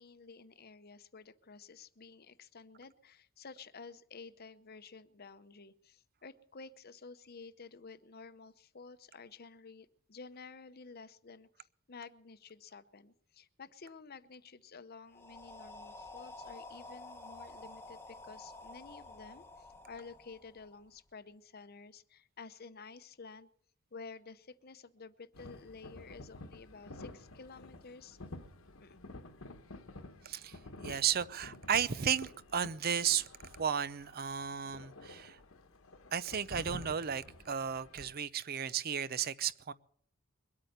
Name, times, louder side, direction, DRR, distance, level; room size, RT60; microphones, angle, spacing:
voice 1, 0.0-23.5 23.9-28.2 28.8-29.1, left 4 dB, 45° left, 13 dB, 0.8 m, -52 dB
sound 1, 15.1-21.0, left 2 dB, 10° left, 1.0 m, -50 dB
sound 2, 25.3-38.1, left 2 dB, 70° left, 1.2 m, -51 dB
voice 2, 30.2-30.6 30.8-33.3 33.6-35.4 36.1-39.7, right 8 dB, 45° right, 17 dB, 0.5 m, -34 dB
22.5 x 8.6 x 6.7 m, 0.63 s
head